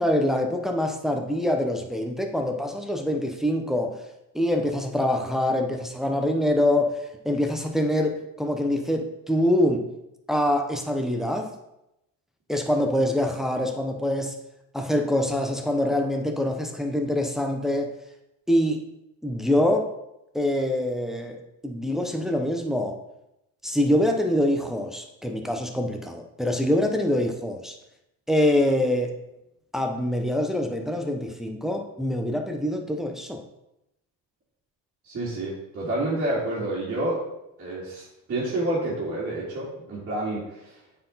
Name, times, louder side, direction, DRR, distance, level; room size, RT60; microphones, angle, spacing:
voice 1, 0.0-4.0 4.3-9.9 10.3-11.5 12.5-14.4 14.7-17.9 18.5-18.9 19.2-19.9 20.3-23.0 23.6-27.7 28.3-29.1 29.7-33.4, left 1 dB, ahead, 3 dB, 0.9 m, -25 dB
voice 2, 35.0-37.2 37.6-40.7, right 1 dB, 40° right, -9 dB, 2.6 m, -29 dB
8.4 x 4.6 x 4.1 m, 0.86 s
cardioid pair, 110°, 34 cm